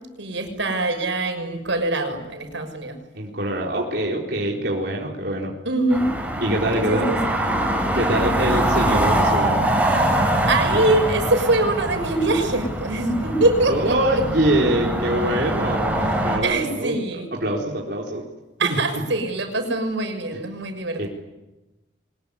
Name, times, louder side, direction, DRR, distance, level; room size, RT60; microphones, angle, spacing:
voice 1, 0.2-3.0 5.6-6.0 6.9-7.2 10.4-13.9 16.4-17.3 18.6-21.1, right 2 dB, 85° right, 5 dB, 6.4 m, -23 dB
voice 2, 3.1-5.5 6.4-7.1 7.9-9.7 13.7-16.9 17.3-18.2 20.3-20.4 21.0-21.1, right 1 dB, 60° right, -2 dB, 4.3 m, -24 dB
sound 1, 5.9-16.4, right 1 dB, 10° right, 6.7 m, -23 dB
24.0 x 22.0 x 9.9 m, 1.0 s
head